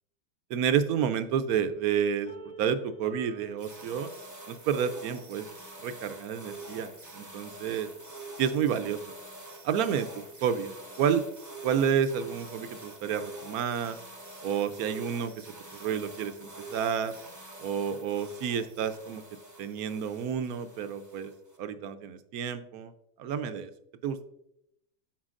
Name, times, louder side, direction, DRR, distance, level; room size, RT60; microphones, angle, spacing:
voice 1, 0.5-2.3 2.6-4.1 4.5-5.5 5.8-7.9 8.4-9.1 9.6-10.1 10.4-11.2 11.6-14.0 14.4-15.5 15.7-17.2 17.6-19.2 19.6-21.3 21.6-22.9 23.2-23.7 24.0-24.2, right 8 dB, 70° right, 10 dB, 0.9 m, -30 dB
sound 1, 2.3-5.2, right 2 dB, 60° left, 3.9 m, -50 dB
sound 2, 3.6-21.6, right 2 dB, 20° right, 0.5 m, -46 dB
13.0 x 4.5 x 2.5 m, 0.77 s
omnidirectional pair, 1.9 m